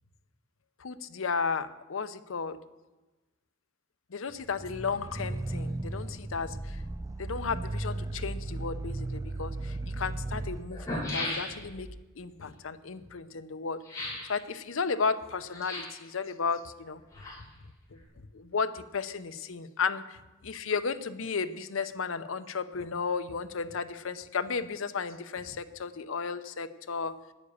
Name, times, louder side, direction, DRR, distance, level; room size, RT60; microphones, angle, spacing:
voice 1, 0.8-2.6 4.1-6.8 7.2-11.9 12.2-17.0 17.9-18.0 18.3-20.2 20.4-27.1, left 5 dB, 75° left, 12 dB, 0.7 m, -34 dB
sound 1, 4.5-10.6, right 2 dB, 15° right, 0.4 m, -36 dB
sound 2, 9.3-9.4 10.3-10.4 10.6-11.9 13.8-14.3 15.5-16.0 16.9-17.7 18.0-18.1, left 1 dB, 15° left, 3.9 m, -36 dB
9.7 x 9.7 x 7.1 m, 1.1 s
head